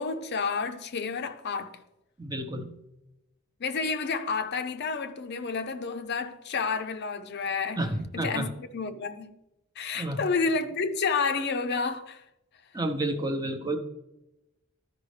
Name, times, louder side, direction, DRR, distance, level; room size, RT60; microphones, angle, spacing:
voice 1, 0.0-1.8 3.6-7.8 8.1-9.4 9.8-12.2, left 4 dB, 50° left, 0.6 m, -30 dB
voice 2, 2.2-2.7 7.8-8.5 9.9-10.2 12.7-13.8, right 1 dB, 20° right, 0.8 m, -30 dB
12.5 x 5.2 x 3.2 m
head